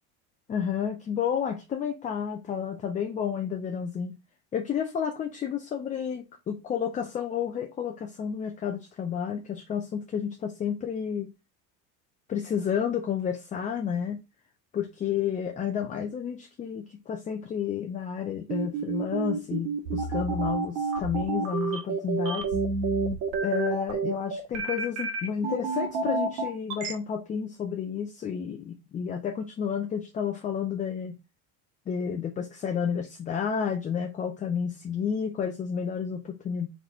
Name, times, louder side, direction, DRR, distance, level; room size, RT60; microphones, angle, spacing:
voice 1, 0.5-4.1 4.5-11.3 12.3-14.2 14.7-22.5 23.4-31.2 31.9-36.7, left 7 dB, 20° left, 0.3 m, -31 dB
sound 1, 18.5-26.9, right 4 dB, 75° right, 1.4 m, -29 dB
4.0 x 3.0 x 3.7 m
supercardioid pair, 105°, 42 cm